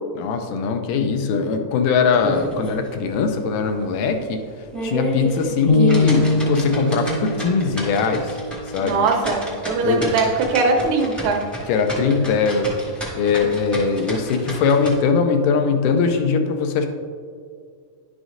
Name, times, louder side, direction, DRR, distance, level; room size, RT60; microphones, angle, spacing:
voice 1, 0.2-4.4 4.8-8.4 8.7-9.0 9.8-10.1 11.7-12.7 13.2-16.9, left 5 dB, 85° left, 5 dB, 2.2 m, -21 dB
sound 1, 2.1-2.9 3.2-3.3 3.8-3.9 4.5-14.9, equal, ahead, 0.4 m, -31 dB
sound 2, 5.7-9.8, left 2 dB, 60° left, 2.2 m, -23 dB
voice 2, 8.8-9.4 9.7-11.4, right 4 dB, 85° right, 2 dB, 2.5 m, -20 dB
11.0 x 6.1 x 2.5 m, 2.1 s
omnidirectional pair, 3.7 m